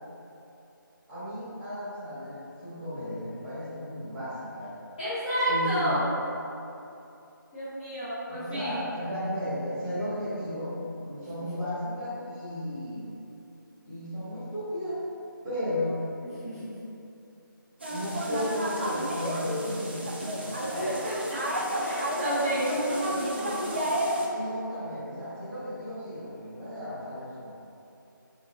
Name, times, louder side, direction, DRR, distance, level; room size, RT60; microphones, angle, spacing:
voice 1, 1.1-4.8 5.5-5.9 8.3-13.1 13.8-15.0 15.4-16.1 17.9-20.9 24.3-27.5, left 1 dB, 10° right, -13 dB, 0.9 m, -34 dB
voice 2, 5.0-6.0 7.5-8.9 11.4-11.5 16.4-16.8 20.7-21.4 21.8-23.7, equal, 20° left, -14 dB, 0.6 m, -30 dB
sound 1, 17.8-24.3, right 1 dB, 30° right, 0.4 m, -31 dB
5.5 x 2.8 x 2.6 m, 2.8 s
figure-of-eight pair, 160°, 11 cm